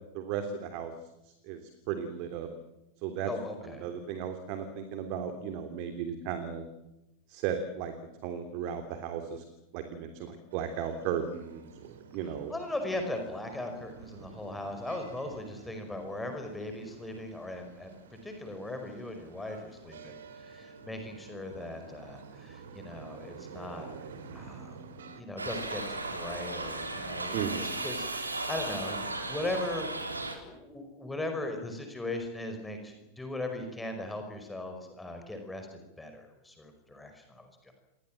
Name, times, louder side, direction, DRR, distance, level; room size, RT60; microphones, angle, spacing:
voice 1, 0.1-0.9 1.4-1.6 1.9-2.5 3.0-3.3 3.6-6.6 7.3-7.9 8.2-9.4 9.7-12.5 27.3-27.7, right 8 dB, 45° right, 7 dB, 3.1 m, -35 dB
voice 2, 3.2-3.9 12.5-23.9 24.3-24.8 25.1-30.2 30.4-37.7, left 2 dB, 5° left, 5 dB, 5.2 m, -39 dB
sound 1, 10.5-25.2, right 5 dB, 60° right, 3.3 m, -50 dB
Shout / Livestock farm animals working animals, 25.4-30.4, right 2 dB, 80° right, 3.7 m, -35 dB
28.5 x 22.5 x 7.7 m, 0.96 s
figure-of-eight pair, 90°, 0 cm